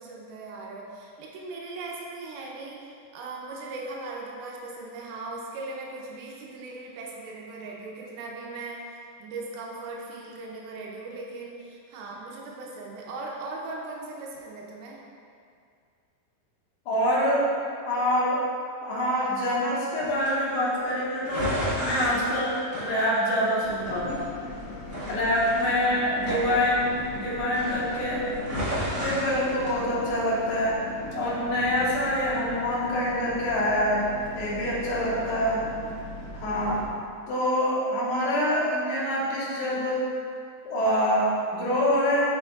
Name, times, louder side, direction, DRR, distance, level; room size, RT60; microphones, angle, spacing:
voice 1, 0.0-15.0 25.7-26.0 29.8-30.0 35.2-35.7, right 3 dB, 85° right, -2 dB, 2.6 m, -39 dB
voice 2, 16.9-17.5 17.8-18.4 18.8-21.5 21.8-24.2 25.1-26.9 27.1-28.2 29.0-30.8 31.1-34.0 34.3-35.6 36.3-36.8 37.3-40.0 40.6-42.3, equal, 65° left, -7 dB, 2.4 m, -25 dB
sound 1, 20.0-20.3 21.2-23.6 23.9-24.5 24.9-27.2 27.5-28.0 28.3-29.7, equal, 65° right, 0.8 m, -32 dB
sound 2, 23.6-36.9, left 2 dB, 80° left, 1.7 m, -39 dB
6.8 x 6.2 x 2.3 m, 2.3 s
omnidirectional pair, 4.3 m